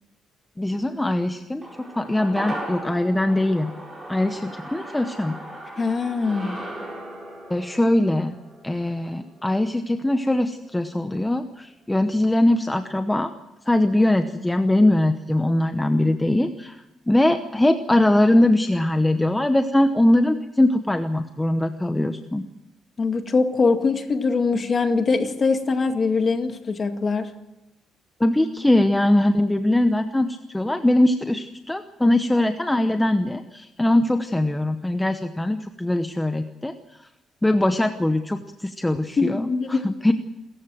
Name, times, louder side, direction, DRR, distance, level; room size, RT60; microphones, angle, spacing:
voice 1, 0.6-1.7 2.0-3.7 4.1-5.4 7.5-8.4 8.6-13.3 13.7-16.8 17.1-22.4 28.2-36.7 37.4-40.1, left 1 dB, 5° left, 7 dB, 0.9 m, -21 dB
sound 1, 1.6-10.1 10.4-10.5, right 1 dB, 15° right, 7.7 m, -37 dB
voice 2, 5.8-6.6 23.0-27.3 39.2-39.8, left 4 dB, 30° left, 7 dB, 2.0 m, -22 dB
28.0 x 14.5 x 7.7 m, 0.95 s
cardioid pair, 155°, 0 cm